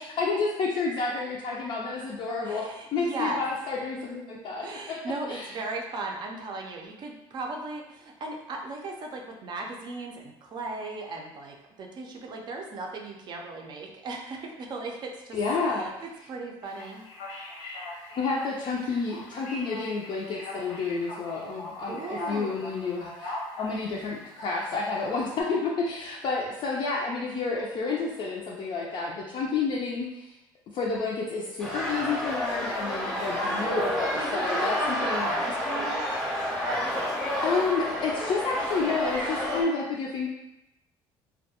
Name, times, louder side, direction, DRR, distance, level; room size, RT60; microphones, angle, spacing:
voice 1, 0.0-5.0 5.3-5.5 15.3-15.9 18.1-30.3 30.7-35.3 37.4-40.3, left 4 dB, 50° left, -3 dB, 0.4 m, -30 dB
voice 2, 2.4-3.4 4.6-15.4 15.7-15.9 16.3-17.1 21.9-22.6 34.1-36.2, right 2 dB, 45° right, 1 dB, 0.4 m, -37 dB
Male speech man speaking, 16.6-25.4, left 2 dB, 90° left, 0.8 m, -41 dB
sound 1, 31.6-39.6, equal, 5° left, 0.6 m, -29 dB
2.3 x 2.1 x 2.8 m, 0.92 s
cardioid pair, 105°, 10 cm